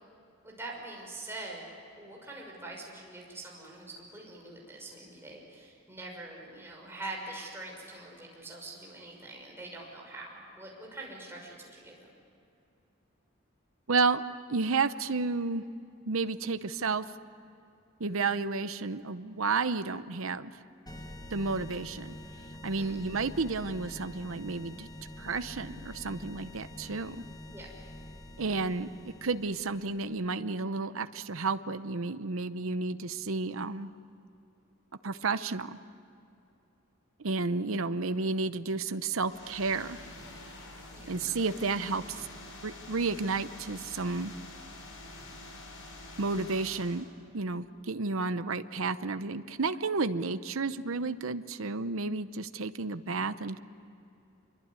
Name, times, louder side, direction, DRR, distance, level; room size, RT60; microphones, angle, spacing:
voice 1, 0.4-1.7 1.9-12.1 22.8-23.0 27.5-27.7 40.9-41.1, right 2 dB, 10° right, -2 dB, 6.0 m, -44 dB
voice 2, 13.9-14.2 14.5-15.6 16.1-17.0 18.0-20.5 21.3-22.2 22.6-24.9 25.2-27.2 28.4-28.9 29.2-33.9 35.0-35.8 37.2-40.0 41.1-42.3 42.6-44.3 46.2-47.1 47.3-53.6, right 4 dB, 80° right, 12 dB, 0.8 m, -31 dB
sound 1, 20.9-30.3, left 1 dB, 20° left, 1.4 m, -46 dB
sound 2, 39.2-47.1, left 2 dB, 75° left, 5.8 m, -47 dB
26.0 x 23.5 x 9.7 m, 2.6 s
head